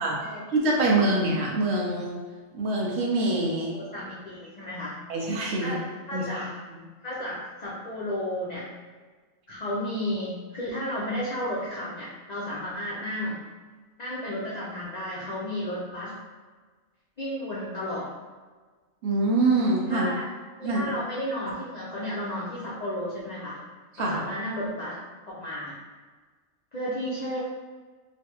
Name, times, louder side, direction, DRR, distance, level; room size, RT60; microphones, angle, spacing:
voice 1, 0.5-2.2 2.5-3.7 5.1-5.8 6.1-6.5 19.0-20.1 20.6-20.8 24.0-24.2, right 2 dB, 65° right, -2 dB, 0.8 m, -25 dB
voice 2, 3.7-5.0 5.6-6.5 7.0-8.7 9.5-13.4 14.0-16.2 17.2-18.1 19.9-20.3 20.6-23.6 24.0-25.0 25.3-25.8 26.7-27.4, left 1 dB, 65° left, -7 dB, 0.4 m, -33 dB
3.1 x 2.1 x 2.8 m, 1.4 s
omnidirectional pair, 1.4 m